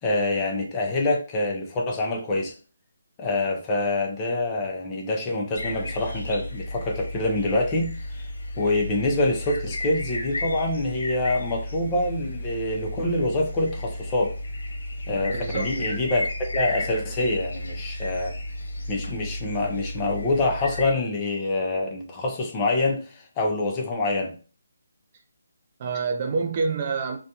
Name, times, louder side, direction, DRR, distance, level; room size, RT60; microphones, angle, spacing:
voice 1, 0.0-2.5 3.2-8.3 8.6-14.3 15.1-16.3 16.5-18.3 18.9-24.3, left 2 dB, 20° left, 0.5 m, -26 dB
sound 1, 5.5-20.9, left 1 dB, 70° left, 0.9 m, -33 dB
voice 2, 15.3-16.0 25.8-27.2, right 4 dB, 35° right, 0.3 m, -27 dB
2.4 x 2.2 x 2.7 m
figure-of-eight pair, 155°, 0 cm